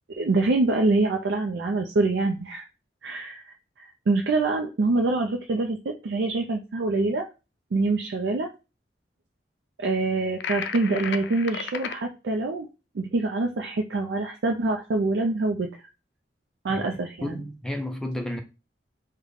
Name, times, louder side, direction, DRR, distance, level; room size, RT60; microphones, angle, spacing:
voice 1, 0.2-2.6 3.0-3.5 4.1-7.3 7.7-8.5 9.8-12.7 12.9-15.7 16.6-17.3, right 3 dB, 85° right, 0.4 m, -25 dB
sound 1, 10.4-12.0, left 7 dB, 70° left, 0.3 m, -33 dB
voice 2, 17.2-18.4, left 1 dB, 5° left, 0.5 m, -31 dB
3.4 x 2.1 x 3.8 m
head